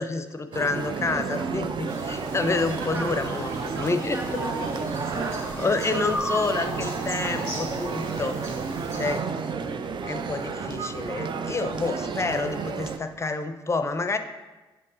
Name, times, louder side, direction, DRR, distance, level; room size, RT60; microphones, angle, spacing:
voice 1, 0.0-4.2 5.6-8.4 8.9-9.3 10.0-14.2, left 3 dB, 25° left, 9 dB, 0.5 m, -28 dB
sound 1, 0.5-13.0, right 5 dB, 40° right, 0.5 m, -31 dB
sound 2, 1.9-9.2, equal, 25° right, 1.7 m, -36 dB
voice 2, 2.8-3.1 3.5-5.4, right 2 dB, 85° right, 2 dB, 0.6 m, -40 dB
7.9 x 5.2 x 2.6 m, 1.2 s
figure-of-eight pair, 40°, 12 cm